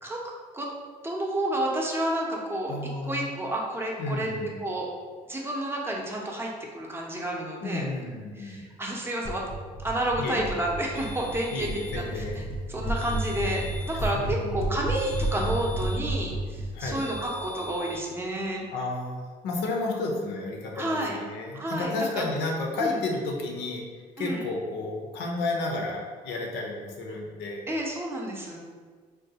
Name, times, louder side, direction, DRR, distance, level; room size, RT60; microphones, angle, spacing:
voice 1, 1.0-2.7 3.0-4.3 4.6-4.9 5.3-7.8 8.4-9.4 9.8-12.2 12.7-18.6 20.7-21.2 21.5-22.2 22.8-23.0 24.2-24.4 27.7-28.6, right 1 dB, 15° right, -1 dB, 0.6 m, -30 dB
voice 2, 2.7-3.3 4.0-4.5 7.6-8.6 10.2-10.5 11.5-12.4 13.9-14.7 16.7-17.1 18.7-23.8 24.2-27.6, left 2 dB, 85° left, 0 dB, 0.7 m, -32 dB
sound 1, 9.2-17.9, right 1 dB, 35° left, 0.4 m, -32 dB
sound 2, 10.9-12.1 12.9-14.1 14.9-16.1 16.9-18.1, left 1 dB, 50° right, 0.7 m, -44 dB
3.8 x 2.2 x 2.8 m, 1.5 s
cardioid pair, 110°, 17 cm